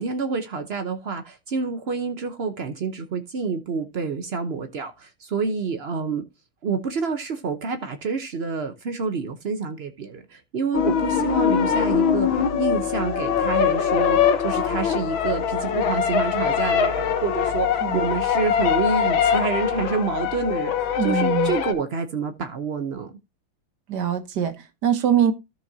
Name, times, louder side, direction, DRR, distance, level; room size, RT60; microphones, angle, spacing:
voice 1, 0.0-6.2 6.6-23.1, right 5 dB, 90° right, 0.5 m, -28 dB
sound 1, 10.7-21.7, left 8 dB, 70° left, 1.8 m, -22 dB
voice 2, 20.9-21.6 23.9-25.3, right 9 dB, 55° right, 1.6 m, -23 dB
13.5 x 6.2 x 2.8 m
omnidirectional pair, 2.3 m